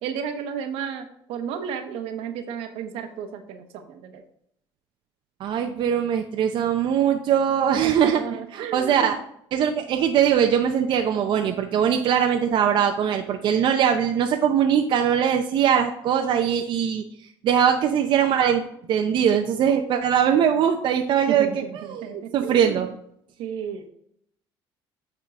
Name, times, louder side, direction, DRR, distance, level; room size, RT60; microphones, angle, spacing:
voice 1, 0.0-4.2 7.8-9.2 21.3-23.0 23.4-23.9, right 7 dB, 75° right, 6 dB, 1.0 m, -33 dB
voice 2, 5.4-8.2 8.5-9.1 9.5-17.0 17.4-18.6 18.9-21.5 21.9-22.1 22.3-22.9, right 8 dB, 55° right, 4 dB, 0.6 m, -21 dB
8.8 x 3.7 x 3.7 m, 0.71 s
cardioid pair, 110°, 10 cm